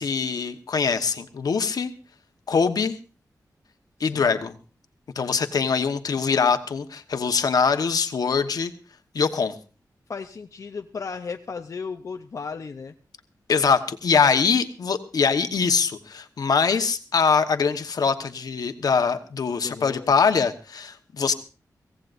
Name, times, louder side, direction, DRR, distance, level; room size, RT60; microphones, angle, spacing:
voice 1, 0.0-1.9 2.5-3.0 4.0-4.6 5.1-8.7 9.1-9.5 13.5-21.3, left 5 dB, 70° left, 7 dB, 1.1 m, -23 dB
voice 2, 10.1-12.9 19.6-20.1, left 5 dB, 50° left, 5 dB, 0.6 m, -35 dB
24.0 x 16.5 x 2.6 m, 0.34 s
wide cardioid pair, 160°, 7 cm